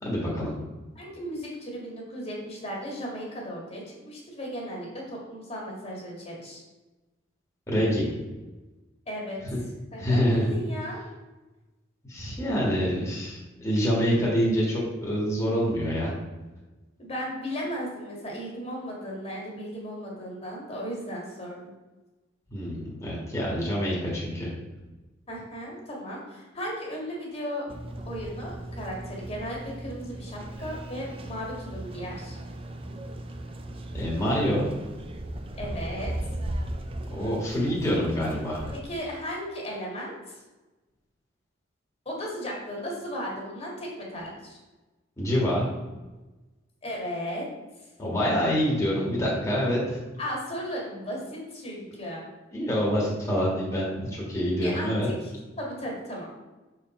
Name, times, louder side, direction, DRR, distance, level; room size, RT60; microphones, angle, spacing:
voice 1, 0.0-0.5 7.7-8.1 9.5-9.6 10.0-10.5 12.1-16.1 22.5-24.5 33.9-34.7 37.1-38.6 45.2-45.6 48.0-50.0 52.5-55.1, equal, 15° left, -5 dB, 1.6 m, -26 dB
voice 2, 1.0-6.6 9.1-9.4 9.9-10.2 10.5-11.0 17.0-21.7 25.3-27.7 28.0-32.4 35.6-36.1 38.8-40.4 42.1-44.6 46.8-47.5 50.2-52.2 54.6-55.3 55.6-56.3, equal, 30° left, -2 dB, 1.8 m, -35 dB
sound 1, 27.7-38.8, right 1 dB, 30° right, 0.6 m, -37 dB
6.7 x 4.7 x 4.3 m, 1.1 s
head